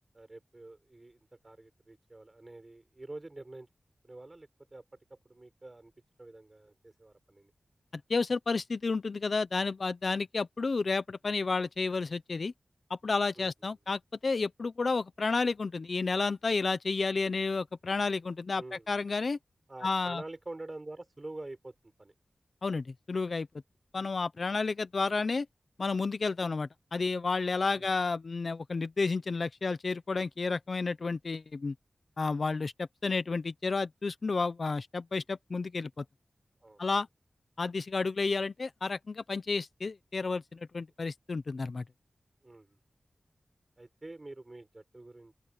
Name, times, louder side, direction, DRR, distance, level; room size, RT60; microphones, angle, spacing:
voice 1, 0.1-3.7 4.0-4.8 5.1-5.9 6.2-7.5 13.4-13.7 18.5-18.9 19.7-22.1 23.9-24.1 27.8-27.9 36.6-36.8 42.4-42.8 43.8-45.3, right 2 dB, 35° right, 7.2 m, -47 dB
voice 2, 8.1-12.5 12.9-19.4 19.8-20.2 22.6-23.5 23.9-25.5 25.8-31.7 32.2-36.0 36.8-37.1 37.6-41.8, left 4 dB, 65° left, 0.8 m, -31 dB
open air
wide cardioid pair, 80°, 0 cm